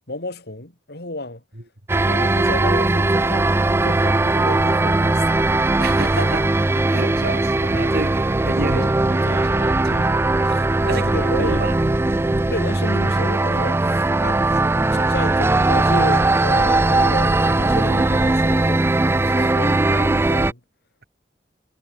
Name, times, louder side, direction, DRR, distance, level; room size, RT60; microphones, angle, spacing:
voice 1, 0.1-1.4 2.1-5.5 6.9-7.1 7.7-7.9 8.7-8.9 10.8-11.7 12.4-14.4 14.9-18.8 19.2-20.6, left 2 dB, 65° left, 4.4 m, -31 dB
sound 1, 1.9-20.5, right 2 dB, 15° right, 0.4 m, -19 dB
voice 2, 5.8-11.8 19.2-19.5, right 2 dB, 60° right, 3.7 m, -31 dB
head